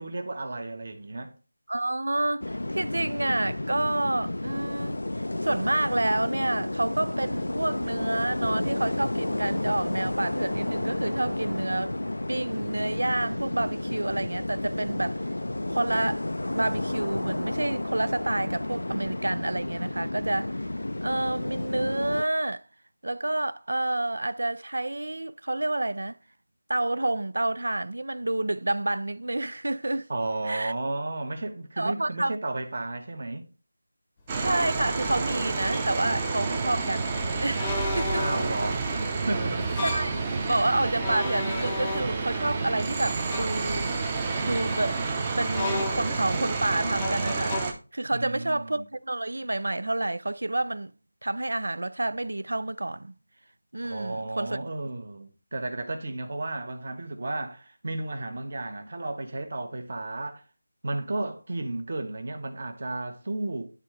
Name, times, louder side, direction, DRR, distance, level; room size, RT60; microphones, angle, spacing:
voice 1, 0.0-1.3 30.1-33.5 38.1-39.8 48.1-48.9 53.8-60.4 60.8-63.7, right 2 dB, 50° right, 1.2 m, -33 dB
voice 2, 1.7-5.0 5.4-12.0 12.3-15.3 15.7-16.3 16.5-20.6 21.0-22.6 23.0-26.2 26.7-30.1 30.5-30.7 31.8-32.4 34.4-38.2 39.8-44.0 44.4-45.0 45.4-47.6 47.9-50.9 51.2-53.2 53.7-54.6, right 2 dB, 80° right, 0.4 m, -29 dB
sound 1, 2.4-22.2, left 1 dB, 85° left, 0.4 m, -31 dB
sound 2, 34.3-47.7, right 4 dB, 20° right, 0.7 m, -29 dB
sound 3, 34.8-34.9 35.7-35.9 37.6-38.6 39.6-40.2 40.9-42.4 43.3-43.6 45.5-46.3 47.0-47.6, left 3 dB, 15° left, 0.8 m, -33 dB
10.5 x 3.7 x 3.3 m
figure-of-eight pair, 175°, 0 cm